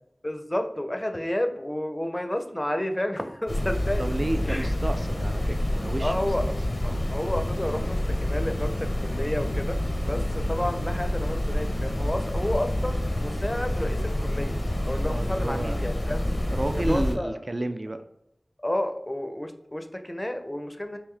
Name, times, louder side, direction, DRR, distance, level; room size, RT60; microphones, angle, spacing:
voice 1, 0.2-4.1 4.4-4.7 6.0-6.5 6.8-14.6 14.8-16.2 16.8-17.4 18.6-21.0, left 1 dB, 20° left, 7 dB, 0.4 m, -31 dB
sound 1, 3.5-17.1, left 1 dB, 75° left, 0.6 m, -28 dB
voice 2, 4.0-6.1 6.4-6.5 15.0-15.8 16.5-18.0, right 1 dB, 50° right, 9 dB, 0.3 m, -31 dB
3.2 x 2.6 x 3.6 m, 0.81 s
wide cardioid pair, 45°, 0 cm